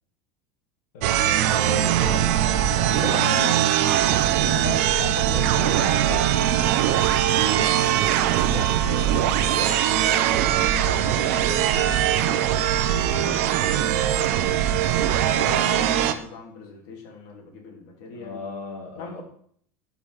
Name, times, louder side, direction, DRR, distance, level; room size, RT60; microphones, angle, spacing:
voice 1, 0.9-2.6 3.0-3.7 6.9-7.1 7.6-7.9 18.1-19.2, left 4 dB, 90° left, 0 dB, 2.3 m, -38 dB
sound 1, 1.0-16.1, right 11 dB, 65° right, 0.9 m, -21 dB
voice 2, 2.9-3.7 4.4-6.8 8.4-13.5 13.8-14.3 15.4-18.4 19.0-19.2, left 4 dB, 55° left, -1 dB, 3.0 m, -38 dB
12.5 x 5.4 x 4.9 m, 0.62 s
supercardioid pair, 160°, 8 cm